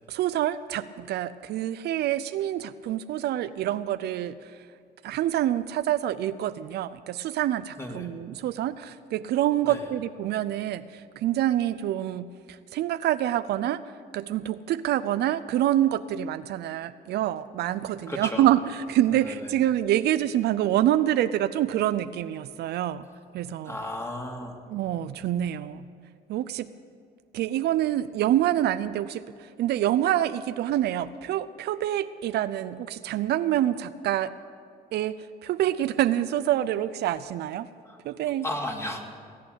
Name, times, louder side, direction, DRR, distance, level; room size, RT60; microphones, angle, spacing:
voice 1, 0.1-4.4 5.0-13.8 14.1-23.0 23.3-23.8 24.7-25.9 26.3-26.7 27.3-29.2 29.6-34.3 34.9-35.1 35.4-37.7 38.0-38.5, right 12 dB, 70° right, 14 dB, 0.5 m, -26 dB
voice 2, 7.8-8.1 9.6-9.8 18.1-18.5 19.2-19.3 23.6-24.5 37.8-38.0 38.4-39.0, left 1 dB, 15° left, 1 dB, 2.7 m, -34 dB
20.0 x 8.7 x 8.1 m, 2.2 s
cardioid pair, 80°, 17 cm